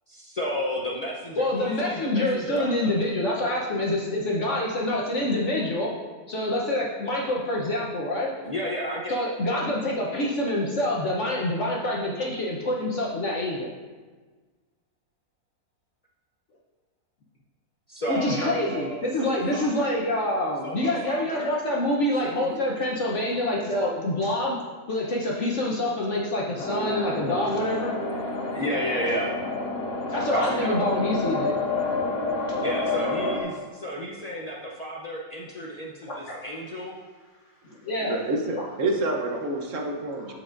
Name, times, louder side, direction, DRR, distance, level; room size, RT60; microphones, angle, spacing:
voice 1, 0.1-3.0 8.4-9.1 17.9-20.0 20.6-21.5 22.2-22.6 27.6-27.7 28.4-29.4 30.3-30.8 32.6-37.0, equal, 70° left, -3 dB, 0.3 m, -32 dB
voice 2, 1.4-5.9 6.3-8.3 9.1-13.7 18.1-24.5 24.9-27.9 30.1-31.5 36.1-36.5 37.6-38.1 38.5-38.7 40.2-40.3, left 1 dB, 55° left, -4 dB, 1.1 m, -26 dB
sound 1, 26.6-33.4, left 2 dB, 85° left, 1.7 m, -29 dB
voice 3, 38.0-40.3, right 2 dB, 55° right, 2 dB, 1.1 m, -28 dB
13.5 x 4.8 x 2.5 m, 1.4 s
omnidirectional pair, 1.7 m